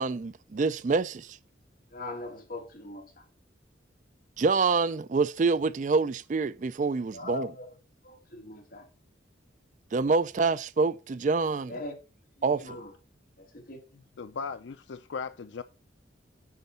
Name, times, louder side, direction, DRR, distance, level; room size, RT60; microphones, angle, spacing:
voice 1, 0.0-1.4 4.4-7.5 9.9-11.7 12.4-12.8, right 4 dB, 45° right, 0.4 m, -26 dB
voice 2, 1.9-3.2 7.1-7.7 8.0-8.9 11.7-12.0 12.4-12.9 13.4-14.2, left 2 dB, 50° left, 2.5 m, -41 dB
voice 3, 14.2-15.6, left 5 dB, 80° left, 0.5 m, -37 dB
9.5 x 4.6 x 5.5 m
head